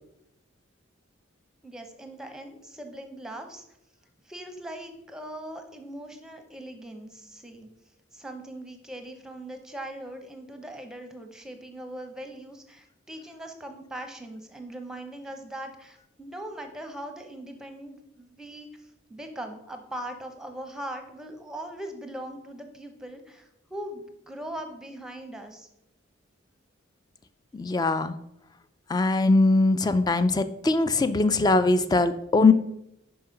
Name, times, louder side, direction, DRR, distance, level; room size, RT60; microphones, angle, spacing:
voice 1, 1.6-3.6 4.2-7.7 8.1-25.7, right 1 dB, 5° right, 5 dB, 0.7 m, -40 dB
voice 2, 27.5-28.1 28.9-32.5, left 3 dB, 20° left, 12 dB, 0.3 m, -21 dB
5.5 x 5.5 x 5.6 m, 0.83 s
head